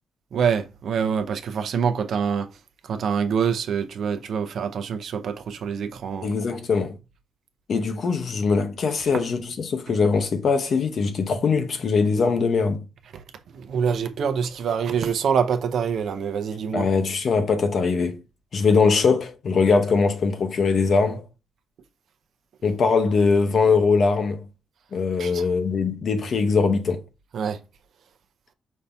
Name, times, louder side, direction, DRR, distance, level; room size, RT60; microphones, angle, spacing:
voice 1, 0.3-2.5 2.8-6.3 13.1-13.2 13.5-16.9 25.2-25.5 27.3-27.6, right 7 dB, 60° right, 0.7 m, -25 dB
voice 2, 6.2-7.0 7.7-12.8 16.7-18.2 18.5-21.2 22.6-24.5 24.9-27.0, left 4 dB, 45° left, 0.8 m, -21 dB
5.4 x 2.7 x 3.4 m
wide cardioid pair, 160°, 0 cm